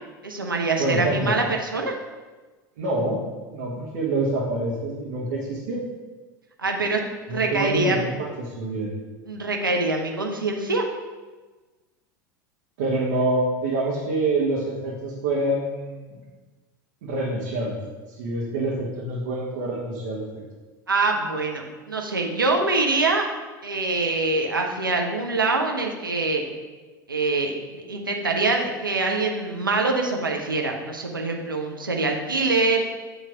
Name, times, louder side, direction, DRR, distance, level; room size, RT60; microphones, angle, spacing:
voice 1, 0.2-2.0 6.6-7.0 7.3-8.0 9.3-10.9 20.9-23.3 23.6-26.4 27.1-32.8, right 3 dB, 85° right, 2 dB, 0.7 m, -24 dB
voice 2, 0.8-1.3 2.8-3.2 3.5-5.8 7.3-8.9 12.8-16.2 17.0-17.8 18.2-20.3, right 2 dB, 60° right, -6 dB, 1.4 m, -26 dB
8.8 x 3.2 x 5.0 m, 1.3 s
figure-of-eight pair, 75°, 11 cm